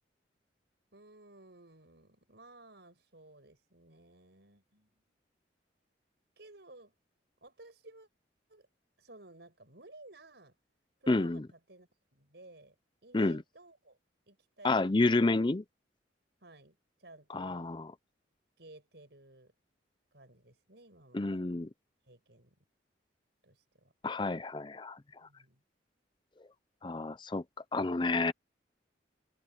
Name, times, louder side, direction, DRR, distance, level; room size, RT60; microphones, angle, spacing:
voice 1, 0.9-4.9 6.4-6.9 7.4-8.1 8.5-8.7 9.0-10.6 11.0-12.7 13.0-14.0 14.3-15.5 16.4-17.7 18.6-19.5 20.1-21.6 22.1-22.6 23.4-23.9 25.2-25.6, right 2 dB, 65° right, 5.8 m, -56 dB
voice 2, 11.1-11.5 13.1-13.4 14.6-15.6 17.3-17.9 21.1-21.7 24.0-25.0 26.8-27.4 27.7-28.3, left 2 dB, 25° left, 0.5 m, -29 dB
head